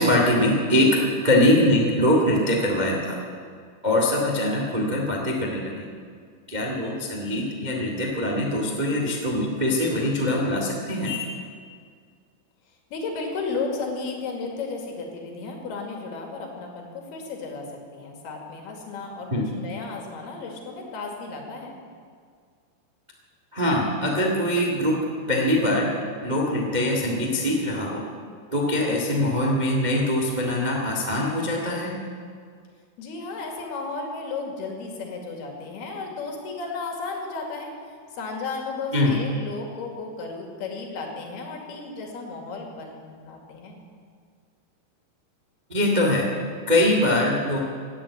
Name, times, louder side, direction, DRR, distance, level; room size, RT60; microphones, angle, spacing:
voice 1, 0.0-3.2 3.8-5.9 6.5-11.3 19.3-19.5 23.5-25.9 26.2-28.1 28.5-32.0 38.9-39.2 45.7-46.3 46.7-47.6, left 1 dB, 35° right, -1 dB, 0.7 m, -23 dB
voice 2, 12.9-17.7 17.9-19.3 19.6-21.7 33.0-37.7 38.2-43.0 43.2-43.8, left 4 dB, 70° left, 1 dB, 4.0 m, -34 dB
17.0 x 9.9 x 8.5 m, 2.1 s
omnidirectional pair, 4.8 m